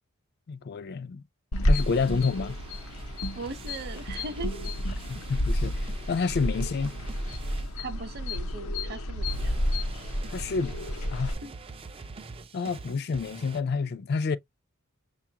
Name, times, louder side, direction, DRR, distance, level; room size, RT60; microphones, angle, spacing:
voice 1, 0.5-1.2 1.6-2.6 5.1-6.9 10.3-10.8 11.1-11.3 12.5-14.4, left 4 dB, 50° left, 0.4 m, -29 dB
sound 1, 1.5-11.3, equal, 85° left, 0.8 m, -30 dB
sound 2, 1.7-8.4 9.3-13.6, right 4 dB, 25° right, 0.3 m, -45 dB
voice 2, 3.3-4.7 7.8-9.6 11.4-11.5, right 3 dB, 45° right, 0.7 m, -39 dB
6.5 x 2.4 x 2.8 m
head